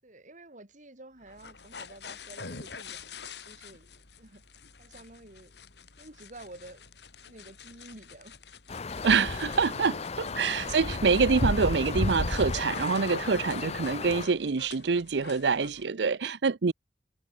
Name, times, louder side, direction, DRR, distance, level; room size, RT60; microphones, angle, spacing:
voice 1, 0.0-4.4 4.8-5.6 6.0-6.8 7.3-8.4 14.0-14.4, right 2 dB, 45° right, 5.7 m, -50 dB
sound 1, 1.2-15.8, left 5 dB, 65° left, 2.6 m, -48 dB
sound 2, 8.7-14.2, left 3 dB, 35° left, 0.8 m, -32 dB
voice 2, 9.0-16.7, right 5 dB, 75° right, 0.6 m, -26 dB
head